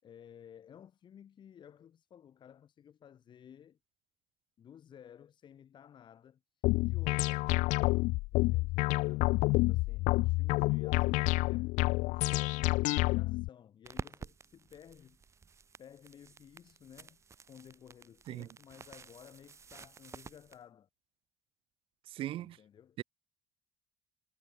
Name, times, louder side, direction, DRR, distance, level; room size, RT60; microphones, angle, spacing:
voice 1, 0.0-3.8 4.6-15.2 15.8-17.2 17.5-20.9 22.4-23.0, left 9 dB, 40° left, 5.8 m, -56 dB
sound 1, 6.6-13.5, left 22 dB, 80° left, 0.4 m, -29 dB
sound 2, 13.8-20.6, right 5 dB, 20° right, 1.4 m, -50 dB
voice 2, 22.1-22.6 23.0-23.1, right 13 dB, 45° right, 0.4 m, -38 dB
cardioid pair, 150°, 13 cm